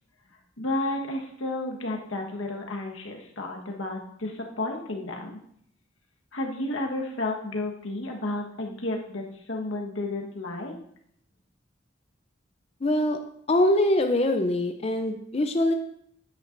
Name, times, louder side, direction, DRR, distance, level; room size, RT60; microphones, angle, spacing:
voice 1, 0.6-5.3 6.3-10.7, left 2 dB, 90° left, 1 dB, 1.3 m, -32 dB
voice 2, 12.8-13.2 13.5-15.7, left 1 dB, 30° left, 5 dB, 0.5 m, -23 dB
9.7 x 8.5 x 2.6 m, 0.69 s
head